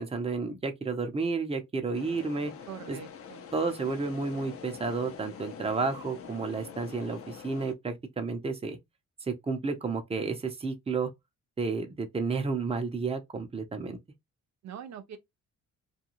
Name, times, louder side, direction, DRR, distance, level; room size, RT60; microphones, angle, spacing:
voice 1, 0.0-2.5 2.9-3.0 3.5-8.8 9.3-11.1 11.6-14.0, right 4 dB, 20° right, 0.7 m, -31 dB
sound 1, 1.9-7.7, left 7 dB, 50° left, 0.6 m, -45 dB
voice 2, 2.7-3.5 14.6-15.2, right 8 dB, 65° right, 0.5 m, -43 dB
2.5 x 2.3 x 2.9 m
cardioid pair, 90°, 30 cm